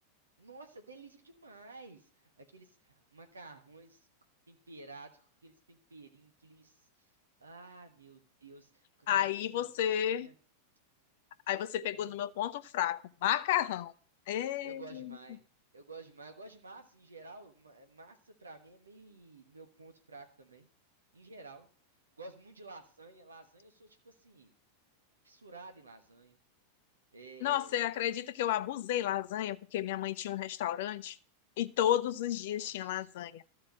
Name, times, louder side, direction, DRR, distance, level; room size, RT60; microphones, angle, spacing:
voice 1, 0.4-4.1 4.5-6.8 7.4-10.3 11.9-12.3 14.6-15.4 15.7-20.7 21.1-21.7 22.2-24.5 25.2-26.4 27.1-28.0 32.5-33.1, right 3 dB, 75° right, 1.3 m, -52 dB
voice 2, 9.1-10.3 11.5-13.9 14.3-15.1 27.4-31.2 31.6-33.4, left 11 dB, 55° left, 0.6 m, -32 dB
12.5 x 4.8 x 7.4 m
figure-of-eight pair, 90°, 0 cm